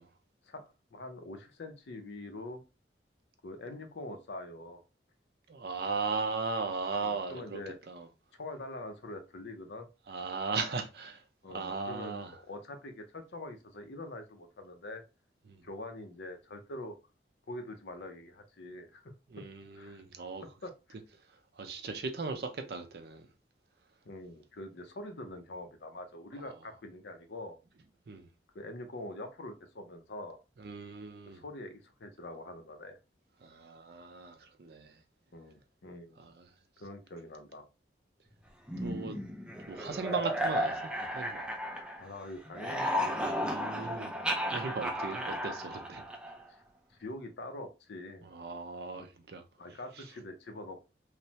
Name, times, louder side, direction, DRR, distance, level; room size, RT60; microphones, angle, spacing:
voice 1, 0.4-2.6 3.4-4.8 7.0-7.8 8.4-9.9 11.4-15.0 15.6-17.0 17.5-19.1 19.7-20.0 20.4-20.7 24.0-27.6 28.5-30.4 31.2-33.0 35.3-36.3 36.8-37.7 42.0-43.3 46.5-46.6 47.0-48.3 49.0-49.1 49.6-50.9, left 2 dB, 75° left, 0.6 m, -44 dB
voice 2, 5.5-7.6 7.9-8.1 10.1-11.2 11.5-12.3 19.3-20.4 21.6-23.3 28.1-28.3 30.6-31.4 33.4-34.9 36.2-36.3 38.8-39.2 39.7-41.4 43.4-44.1 44.5-46.0 48.2-49.4, right 4 dB, 60° right, 0.5 m, -37 dB
sound 1, 38.7-42.2 42.5-46.5, equal, 5° right, 0.4 m, -34 dB
3.2 x 2.0 x 2.8 m
head